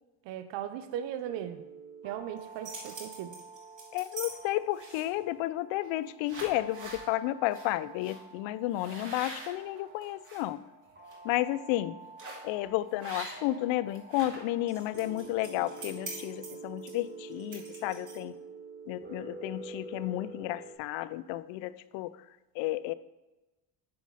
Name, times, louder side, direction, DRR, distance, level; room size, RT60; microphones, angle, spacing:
voice 1, 0.2-1.6 2.0-3.4, right 10 dB, 70° right, 10 dB, 0.8 m, -37 dB
sound 1, 1.3-20.7, right 3 dB, 25° right, 1.6 m, -48 dB
sound 2, 2.4-4.3 4.7-5.2 5.8-6.0 6.2-7.0 7.5-7.7 8.0-8.2 8.7-10.4 10.9-11.1 12.2-12.5 13.0-13.6 13.9-18.4, right 2 dB, 40° right, 2.8 m, -44 dB
voice 2, 3.9-10.6 11.2-12.0 12.4-18.3 18.9-22.1 22.6-22.9, left 15 dB, 75° left, 16 dB, 0.5 m, -32 dB
9.5 x 4.9 x 3.9 m, 1.1 s
cardioid pair, 90°, 46 cm